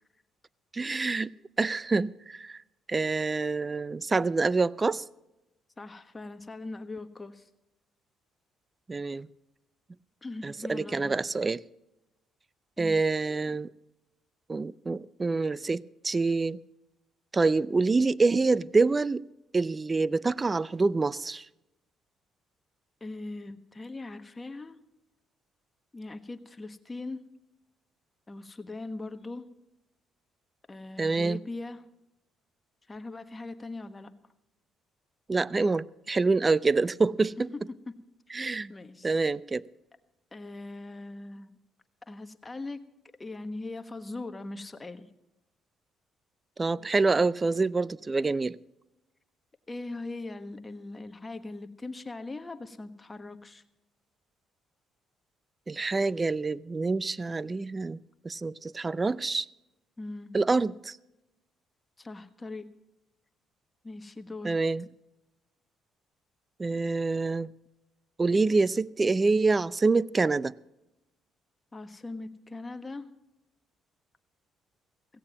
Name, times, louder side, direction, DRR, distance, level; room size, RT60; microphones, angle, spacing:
voice 1, 0.7-1.3 1.6-2.6 2.9-5.0 8.9-9.3 10.4-11.6 12.8-13.7 14.5-16.6 17.3-19.3 19.5-21.5 31.0-31.4 35.3-37.5 38.3-38.7 39.0-39.7 46.6-48.6 55.7-58.0 58.2-59.5 60.3-61.0 64.4-64.8 66.6-67.5 68.2-70.6, right 3 dB, 30° right, 0.5 m, -26 dB
voice 2, 5.8-7.5 10.2-11.2 12.8-13.1 23.0-24.8 25.9-27.2 28.3-29.4 30.7-31.8 32.9-34.1 37.9-38.0 38.3-39.1 40.3-41.5 42.1-42.8 43.2-45.1 49.7-53.6 60.0-60.3 62.0-62.7 63.8-64.6 71.7-73.1, left 2 dB, 25° left, 1.3 m, -40 dB
17.0 x 16.0 x 3.0 m
hypercardioid pair, 60°, 0 cm